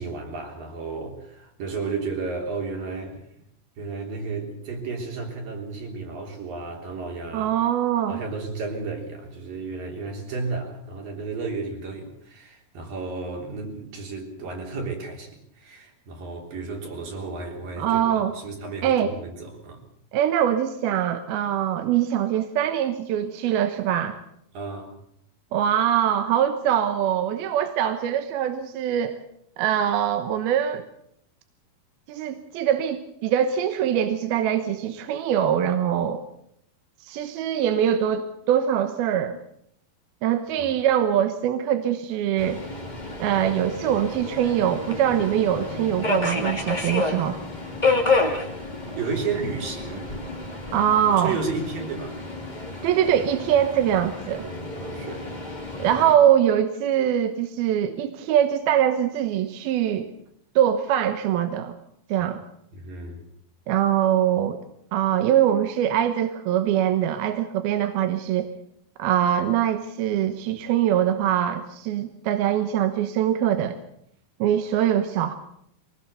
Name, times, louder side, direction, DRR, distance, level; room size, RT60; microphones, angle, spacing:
voice 1, 0.0-3.4 3.8-7.5 8.1-19.8 24.5-25.0 40.6-40.8 49.0-50.1 51.1-52.2 54.3-55.3 62.7-63.3, right 4 dB, 65° right, 1 dB, 5.2 m, -33 dB
voice 2, 7.3-8.2 17.8-18.3 18.8-19.1 20.1-24.2 25.5-29.2 29.6-30.8 32.1-36.2 37.0-39.4 40.2-42.6 43.2-47.4 50.7-51.4 52.8-54.5 55.8-60.1 60.6-61.8 62.1-62.4 63.7-64.6 64.9-68.5 69.0-73.8 74.4-75.3, right 10 dB, 80° right, 8 dB, 3.0 m, -23 dB
Subway metro underground, 42.4-56.1, left 3 dB, 15° left, 2.0 m, -30 dB
23.5 x 19.0 x 6.9 m, 0.72 s
omnidirectional pair, 4.4 m